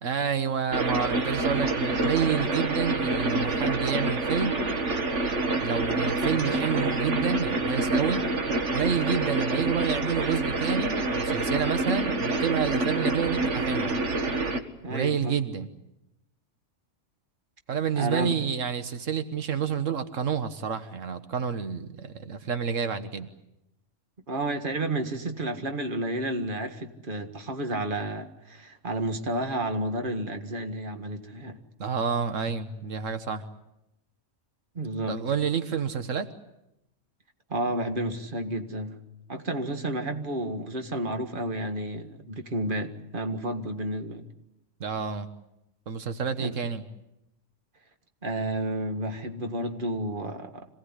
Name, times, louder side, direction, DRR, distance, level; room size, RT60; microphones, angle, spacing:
voice 1, 0.0-4.6 5.6-8.2 8.7-14.0 14.9-15.7 17.7-23.3 31.8-33.4 35.1-36.3 44.8-45.3 45.9-46.8, right 7 dB, 90° right, 9 dB, 1.6 m, -29 dB
sound 1, 0.7-14.6, right 2 dB, 70° right, 2.0 m, -27 dB
voice 2, 14.8-15.4 18.0-18.3 24.3-31.6 34.8-35.2 37.5-39.0 39.3-44.3 46.4-46.5 48.2-50.7, right 1 dB, 45° right, 6 dB, 1.9 m, -31 dB
26.5 x 17.5 x 9.9 m, 0.89 s
omnidirectional pair, 1.3 m